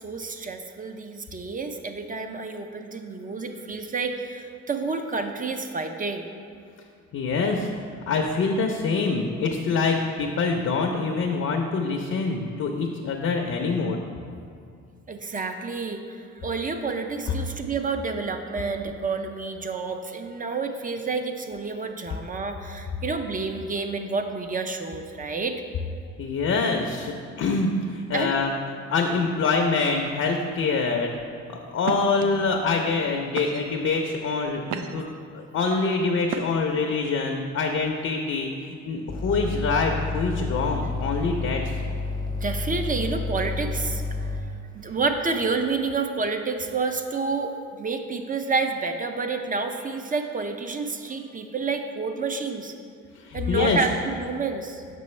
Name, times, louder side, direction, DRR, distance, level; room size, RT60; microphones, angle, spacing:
voice 1, 0.0-6.3 15.1-25.6 28.1-28.4 42.4-44.0 44.7-52.7 53.3-54.8, right 4 dB, 30° right, 6 dB, 0.5 m, -29 dB
voice 2, 7.1-7.7 8.1-14.0 26.2-28.5 28.9-31.1 31.7-35.1 35.3-41.6 53.2-53.8, left 4 dB, 55° left, 3 dB, 0.6 m, -25 dB
sound 1, 31.0-31.3 31.8-32.2 32.9-33.0 33.4-33.9 34.4-35.2 36.3-36.8, right 8 dB, 75° right, 0.5 m, -34 dB
sound 2, 39.1-44.4, left 3 dB, 15° left, 0.6 m, -30 dB
6.8 x 5.2 x 3.2 m, 2.3 s
cardioid pair, 90°, 30 cm